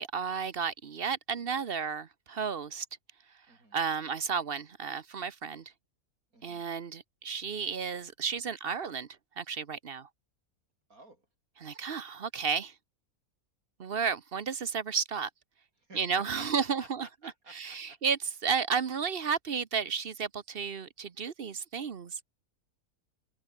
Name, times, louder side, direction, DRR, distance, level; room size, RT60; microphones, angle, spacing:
voice 1, 0.0-2.9 3.7-5.6 6.4-9.1 9.4-10.1 11.6-12.7 13.8-15.3 15.9-17.1 17.5-22.2, right 6 dB, 45° right, 1.0 m, -32 dB
voice 2, 3.5-3.8 6.3-6.6 10.9-11.3 15.8-18.0, right 2 dB, 80° right, 7.2 m, -53 dB
omnidirectional pair, 1.5 m